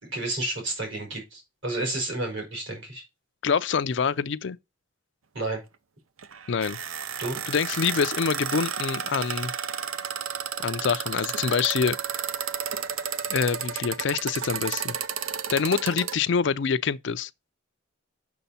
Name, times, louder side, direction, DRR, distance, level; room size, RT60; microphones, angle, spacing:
voice 1, 0.0-3.0 5.3-5.6 7.2-7.4, right 2 dB, 65° right, 4.5 m, -31 dB
voice 2, 3.4-4.6 6.5-6.8 7.5-9.5 10.6-12.0 13.3-14.9 15.5-17.3, left 6 dB, 60° left, 0.4 m, -26 dB
sound 1, 6.2-16.2, right 8 dB, 85° right, 0.6 m, -32 dB
6.8 x 6.3 x 4.1 m
head